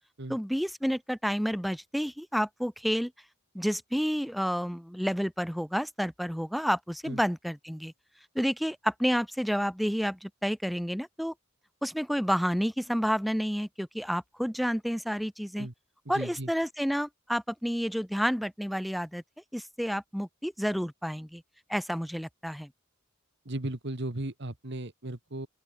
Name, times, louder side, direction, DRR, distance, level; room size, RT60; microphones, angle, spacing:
voice 1, 0.3-3.1 3.5-7.9 8.3-11.3 11.8-15.7 16.1-19.2 19.5-21.4 21.7-22.7, equal, ahead, 0.8 m, -30 dB
voice 2, 16.1-16.5 23.5-25.5, right 1 dB, 60° right, 2.0 m, -36 dB
open air
head